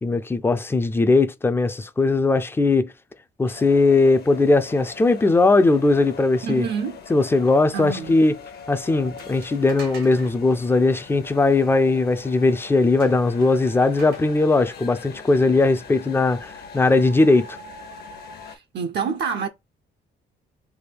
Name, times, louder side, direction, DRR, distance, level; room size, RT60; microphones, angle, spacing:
voice 1, 0.0-2.9 3.4-6.7 7.1-8.4 8.7-17.6, left 3 dB, 10° left, 0.4 m, -19 dB
sound 1, 3.5-18.6, left 4 dB, 55° left, 0.7 m, -42 dB
voice 2, 6.4-7.0 7.7-8.2 18.5-19.5, right 6 dB, 60° right, 0.5 m, -27 dB
sound 2, 9.2-10.3 13.0-14.2, right 4 dB, 90° right, 1.4 m, -43 dB
3.4 x 2.2 x 3.2 m
cardioid pair, 90°, 20 cm